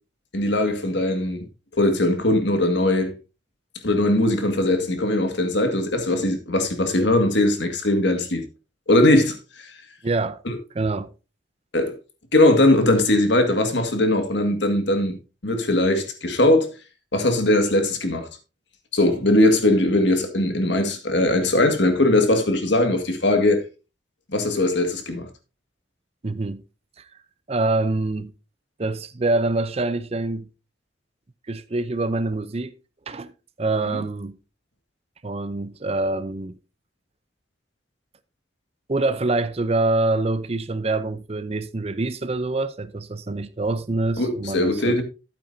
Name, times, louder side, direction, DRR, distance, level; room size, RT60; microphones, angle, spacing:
voice 1, 0.3-1.5 1.8-3.2 3.8-8.4 8.9-9.4 10.5-10.6 11.7-12.0 12.3-16.7 17.1-18.3 18.9-23.6 24.3-25.3 44.2-45.0, left 1 dB, 70° left, 1.9 m, -20 dB
voice 2, 10.0-10.4 10.7-11.1 26.2-26.6 27.0-27.1 27.5-28.3 28.8-30.5 31.5-32.7 33.1-33.3 33.6-34.4 35.2-36.5 38.9-45.0, right 2 dB, 35° right, 0.6 m, -25 dB
12.0 x 8.7 x 2.7 m
head